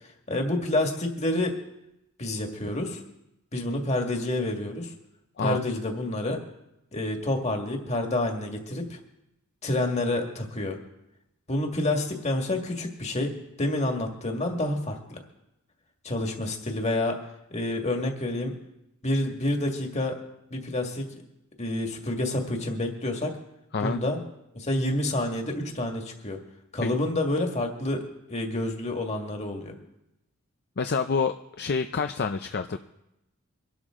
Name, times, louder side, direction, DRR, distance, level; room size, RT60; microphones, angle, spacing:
voice 1, 0.3-1.5 2.2-3.0 3.5-4.9 5.4-6.4 6.9-9.0 9.6-10.8 11.5-13.3 13.6-15.2 16.0-17.2 17.5-18.5 19.0-20.2 20.5-21.1 21.6-23.3 23.8-24.2 24.5-26.4 26.7-29.7, left 1 dB, 30° left, 2 dB, 2.0 m, -28 dB
voice 2, 30.8-32.8, left 5 dB, 50° left, 8 dB, 0.5 m, -27 dB
24.0 x 12.0 x 3.8 m, 0.88 s
head